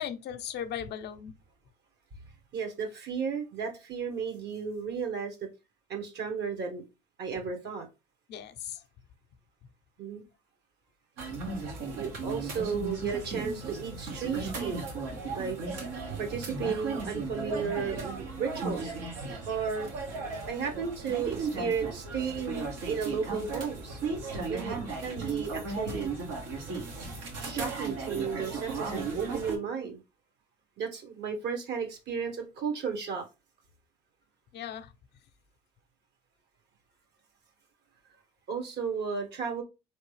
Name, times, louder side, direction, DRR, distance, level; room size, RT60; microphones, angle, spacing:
voice 1, 0.0-1.3 8.3-8.8 34.5-34.9, left 9 dB, 65° left, 0.6 m, -37 dB
voice 2, 2.5-5.4 5.9-6.8 7.2-7.9 10.0-10.2 11.9-14.8 15.3-15.6 16.2-18.9 19.5-19.9 20.5-24.0 24.5-26.1 27.4-30.0 30.8-33.3 38.5-39.6, right 6 dB, 65° right, 1.3 m, -34 dB
sound 1, 11.2-29.6, right 4 dB, 85° right, 1.3 m, -36 dB
4.1 x 3.1 x 3.2 m
supercardioid pair, 75°, 19 cm